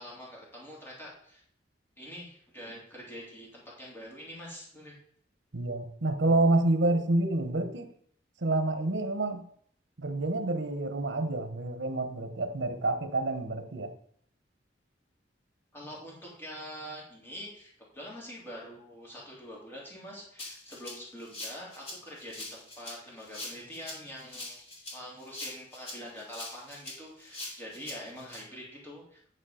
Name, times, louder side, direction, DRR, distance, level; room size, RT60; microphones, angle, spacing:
voice 1, 0.0-1.4 2.0-5.0 15.7-29.3, equal, 10° left, 2.9 m, -45 dB
voice 2, 5.5-7.9 8.4-9.5 10.0-13.9, right 2 dB, 75° right, 1.0 m, -28 dB
Rattle (instrument), 20.4-28.4, left 2 dB, 35° left, 2.8 m, -43 dB
10.0 x 4.7 x 5.0 m
head